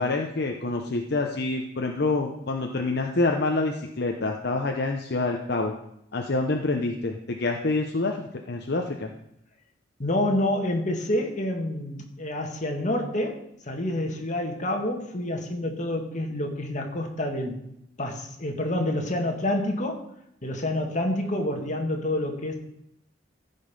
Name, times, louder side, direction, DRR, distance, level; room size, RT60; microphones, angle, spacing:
voice 1, 0.0-5.7 6.1-9.1, left 3 dB, 60° left, 2 dB, 0.9 m, -27 dB
voice 2, 10.0-17.6 18.0-20.1 20.4-22.5, left 1 dB, 45° left, 3 dB, 1.7 m, -28 dB
14.5 x 5.4 x 5.3 m, 0.77 s
head